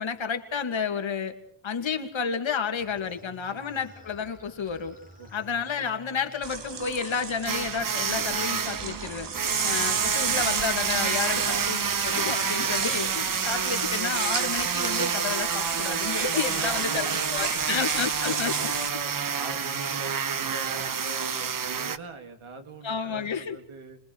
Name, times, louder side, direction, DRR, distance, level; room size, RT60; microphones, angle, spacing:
voice 1, 0.0-1.3 1.6-5.0 5.3-9.3 9.6-17.1 17.3-18.7 22.8-23.6, left 6 dB, 70° left, 6 dB, 2.4 m, -31 dB
sound 1, 2.8-15.9 16.8-19.4, equal, 15° right, 5.6 m, -53 dB
sound 2, 6.4-18.9, right 5 dB, 60° right, 2.2 m, -33 dB
sound 3, 7.5-22.0, right 6 dB, 45° right, 0.9 m, -29 dB
voice 2, 9.4-9.8 11.3-11.7 16.6-17.8 18.2-24.0, right 3 dB, 80° right, 6 dB, 3.0 m, -42 dB
30.0 x 22.5 x 4.7 m, 0.62 s
wide cardioid pair, 85°, 48 cm